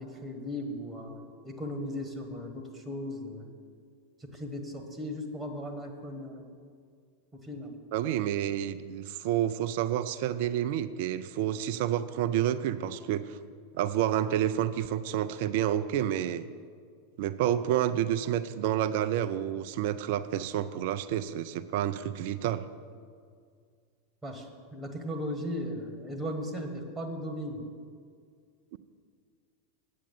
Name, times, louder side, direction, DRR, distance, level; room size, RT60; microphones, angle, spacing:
voice 1, 0.0-3.5 4.2-6.5 7.4-7.8 24.2-27.7, equal, 10° right, 5 dB, 1.5 m, -37 dB
voice 2, 7.9-13.4 13.7-16.5 17.2-22.6 28.7-28.8, right 11 dB, 55° right, 13 dB, 0.4 m, -29 dB
8.6 x 7.5 x 7.2 m, 2.1 s
figure-of-eight pair, 90°, 0 cm